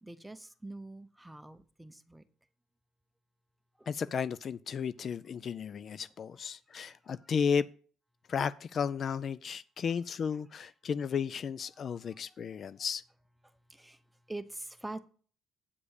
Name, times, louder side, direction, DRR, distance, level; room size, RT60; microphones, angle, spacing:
voice 1, 0.0-2.2 6.8-6.9 11.7-12.2 13.8-14.0 14.3-15.0, right 2 dB, 5° right, 0.7 m, -44 dB
voice 2, 3.9-7.6 8.3-13.0, left 6 dB, 40° left, 0.3 m, -33 dB
8.6 x 5.1 x 6.4 m
cardioid pair, 145°, 0 cm